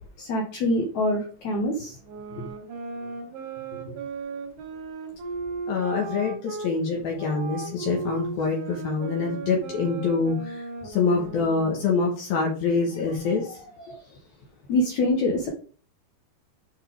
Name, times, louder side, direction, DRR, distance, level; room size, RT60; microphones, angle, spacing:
voice 1, 0.2-2.0 13.9-14.0 14.7-15.5, left 1 dB, 85° left, 1 dB, 1.6 m, -25 dB
sound 1, 2.0-6.7 7.2-12.1, right 4 dB, 85° right, 4.1 m, -36 dB
voice 2, 5.7-13.6, left 4 dB, 65° left, -1 dB, 2.7 m, -26 dB
9.0 x 5.5 x 3.5 m, 0.40 s
omnidirectional pair, 5.2 m